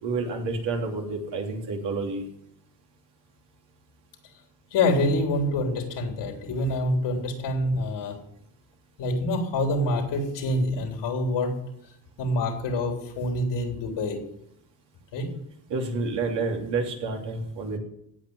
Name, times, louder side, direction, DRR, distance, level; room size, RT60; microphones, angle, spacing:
voice 1, 0.0-2.3 15.7-17.8, right 3 dB, 85° right, 0 dB, 3.4 m, -29 dB
voice 2, 4.7-8.1 9.0-11.5 12.2-14.2 15.1-15.3, left 1 dB, 85° left, 2 dB, 3.6 m, -26 dB
16.5 x 6.1 x 9.7 m, 0.77 s
cardioid pair, 90°, 41 cm